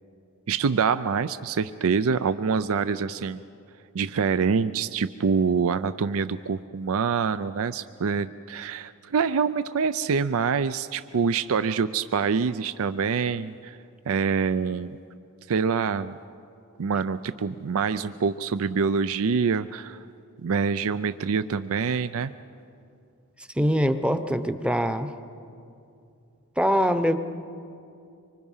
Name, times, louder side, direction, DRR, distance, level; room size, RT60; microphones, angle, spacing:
voice 1, 0.5-3.4 3.9-13.8 14.1-15.0 15.5-16.2 16.8-20.0 20.4-22.3, right 5 dB, 65° right, 13 dB, 0.5 m, -25 dB
voice 2, 23.6-25.1 26.6-27.2, equal, 5° right, 10 dB, 0.8 m, -23 dB
25.0 x 25.0 x 5.6 m, 2.6 s
head